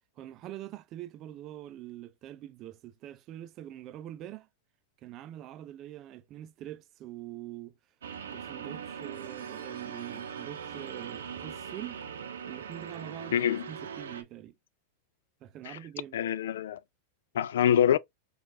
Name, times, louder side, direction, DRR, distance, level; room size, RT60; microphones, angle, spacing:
voice 1, 0.2-4.5 5.0-7.7 8.3-12.0 12.5-13.4 13.7-14.5 15.4-16.2, right 13 dB, 40° right, 0.4 m, -44 dB
sound 1, 8.0-14.2, right 7 dB, 85° right, 0.6 m, -41 dB
voice 2, 13.3-13.7 15.7-15.8 16.1-16.8 17.3-18.0, left 9 dB, 75° left, 0.3 m, -25 dB
4.4 x 2.4 x 2.7 m
hypercardioid pair, 110°, 0 cm